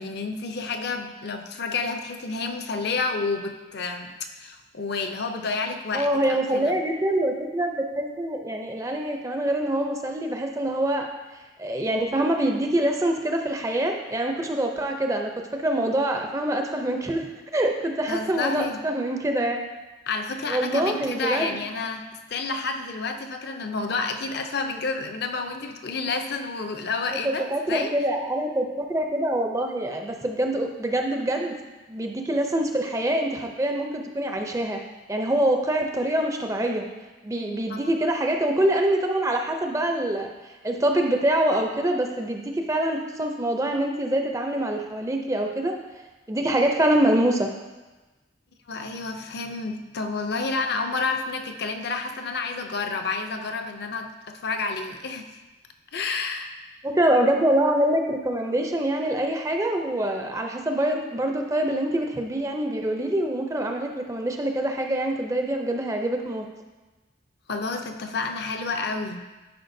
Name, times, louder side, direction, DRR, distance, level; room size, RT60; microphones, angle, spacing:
voice 1, 0.0-4.1 4.4-6.8 18.1-18.8 20.1-27.9 37.7-37.9 48.7-55.3 55.9-56.5 67.5-69.2, left 4 dB, 55° left, 5 dB, 0.5 m, -30 dB
voice 2, 5.9-11.1 11.6-17.3 17.5-19.6 20.5-21.6 27.2-31.6 31.9-34.8 35.1-36.9 37.2-45.7 46.3-47.5 56.8-66.5, right 1 dB, 15° right, 3 dB, 0.5 m, -25 dB
10.0 x 4.9 x 2.6 m, 1.2 s
head